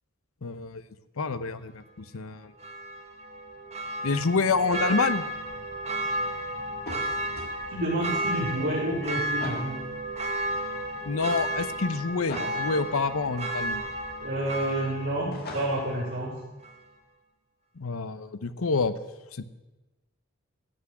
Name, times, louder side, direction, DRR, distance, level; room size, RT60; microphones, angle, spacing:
voice 1, 0.4-0.8 1.2-2.5 4.0-5.2 11.1-13.8 17.8-18.9 19.4-19.5, left 4 dB, 75° left, 13 dB, 0.8 m, -27 dB
Church bell, 2.6-16.3 16.6-16.7, right 1 dB, 30° right, 1.2 m, -33 dB
sound 1, 6.8-7.5 9.4-9.7 12.3-12.6 15.3-15.9, left 2 dB, 50° left, 2.3 m, -38 dB
voice 2, 7.7-9.8 14.2-16.3, right 1 dB, 55° right, -9 dB, 4.2 m, -29 dB
14.0 x 6.1 x 9.9 m, 1.1 s
head